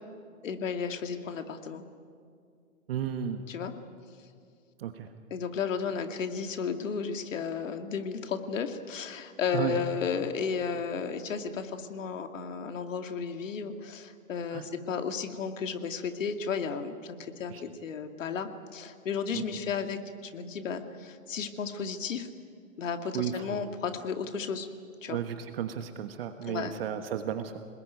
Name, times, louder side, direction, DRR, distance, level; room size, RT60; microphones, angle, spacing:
voice 1, 0.4-1.8 3.5-3.7 5.3-22.3 22.8-24.7 25.0-25.2 26.5-26.7, left 6 dB, 65° left, 6 dB, 2.5 m, -33 dB
voice 2, 2.9-3.4 4.8-5.1 9.5-9.8 14.5-14.7 17.5-17.6 19.3-19.4 23.1-23.7 25.1-27.6, right 9 dB, 45° right, 8 dB, 1.4 m, -33 dB
27.5 x 20.5 x 9.5 m, 2.3 s
hypercardioid pair, 140°, 42 cm